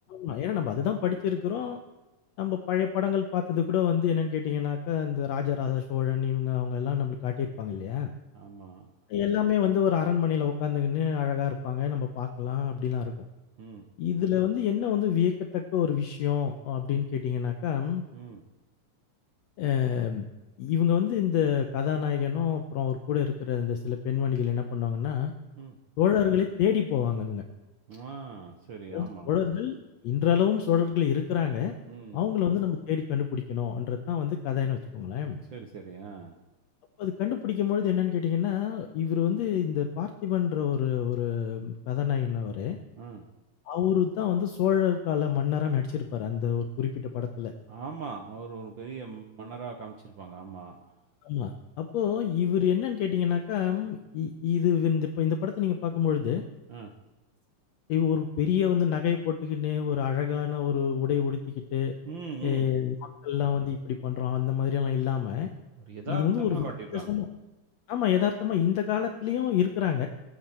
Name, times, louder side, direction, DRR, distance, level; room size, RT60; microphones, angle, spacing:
voice 1, 0.1-1.8 2.4-8.1 9.1-13.1 14.0-18.1 19.6-20.3 20.6-25.3 26.0-27.4 28.9-29.8 30.0-31.7 32.1-35.4 37.0-42.8 43.7-47.5 51.2-51.5 51.8-56.4 57.9-61.9 62.4-63.0 63.2-65.5 66.1-66.6 66.9-67.3 67.9-70.1, left 9 dB, 70° left, 5 dB, 1.9 m, -27 dB
voice 2, 8.3-8.9 13.6-13.9 18.1-18.4 25.5-25.8 27.9-29.4 31.9-32.2 35.5-36.3 43.0-43.2 47.7-50.8 56.7-56.9 62.0-62.7 65.8-67.2, right 4 dB, 65° right, 4 dB, 1.2 m, -40 dB
25.0 x 8.9 x 4.4 m, 1.1 s
omnidirectional pair, 3.5 m